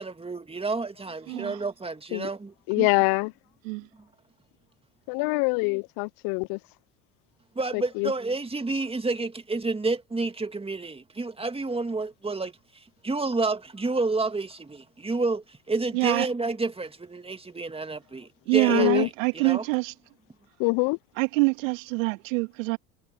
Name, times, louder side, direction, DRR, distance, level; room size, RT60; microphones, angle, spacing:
voice 1, 0.0-2.5 7.6-12.5 13.0-19.6, right 3 dB, 15° right, 2.2 m, -30 dB
voice 2, 1.3-1.6 2.8-2.9 3.7-3.9 15.9-16.3 18.5-19.9 21.2-22.8, right 29 dB, 75° right, 1.9 m, -25 dB
voice 3, 2.7-3.3 5.1-6.6 7.7-8.1 18.7-19.1 20.6-21.0, left 30 dB, 60° left, 0.5 m, -24 dB
hypercardioid pair, 75°, 39 cm